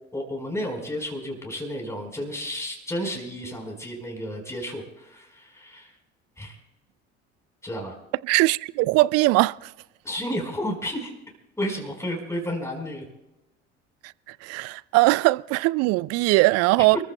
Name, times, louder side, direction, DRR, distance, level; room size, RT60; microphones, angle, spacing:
voice 1, 0.1-5.9 6.4-6.6 7.6-8.0 10.0-11.1 11.6-13.0, equal, 10° left, 4.4 m, -32 dB
voice 2, 8.3-9.6 14.4-17.0, right 21 dB, 45° right, 0.4 m, -20 dB
29.5 x 14.5 x 2.2 m
figure-of-eight pair, 60°, 35 cm